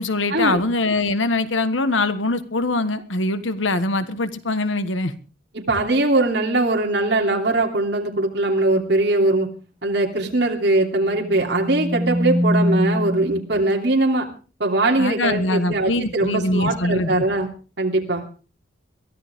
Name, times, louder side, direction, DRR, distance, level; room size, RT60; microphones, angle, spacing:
voice 1, 0.0-5.1 15.0-17.2, left 2 dB, 85° left, 11 dB, 1.4 m, -23 dB
voice 2, 5.7-9.5 9.8-14.3 14.6-17.5 17.8-18.2, right 2 dB, 65° right, -1 dB, 3.0 m, -21 dB
sound 1, 11.0-13.6, left 1 dB, 20° right, 1.7 m, -23 dB
22.5 x 14.0 x 3.6 m, 0.36 s
head